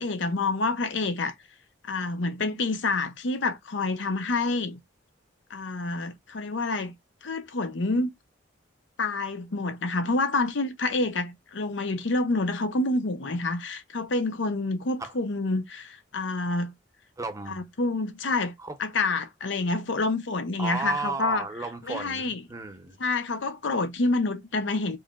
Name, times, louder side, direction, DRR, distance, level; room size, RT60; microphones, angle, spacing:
voice 1, 0.0-1.3 1.8-4.8 5.5-6.9 7.2-8.1 9.0-16.7 17.5-18.5 18.8-21.5 21.9-22.4 23.0-25.0, left 3 dB, 75° left, 0.7 m, -28 dB
voice 2, 17.2-17.6 18.6-18.8 20.6-23.0, right 3 dB, 20° right, 0.6 m, -33 dB
4.7 x 3.1 x 2.3 m
head